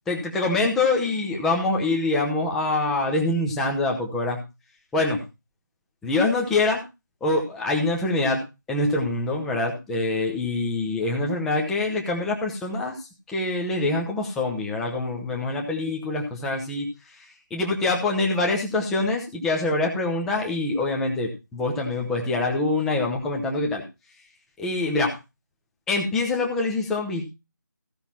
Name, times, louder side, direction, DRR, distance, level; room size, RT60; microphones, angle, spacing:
voice 1, 0.1-4.4 4.9-5.2 6.0-6.8 7.2-8.4 8.7-17.2 17.5-23.8 24.6-25.2 25.9-27.2, left 2 dB, 5° left, 0 dB, 0.8 m, -25 dB
15.0 x 5.8 x 5.7 m, 0.27 s
figure-of-eight pair, 165°, 11 cm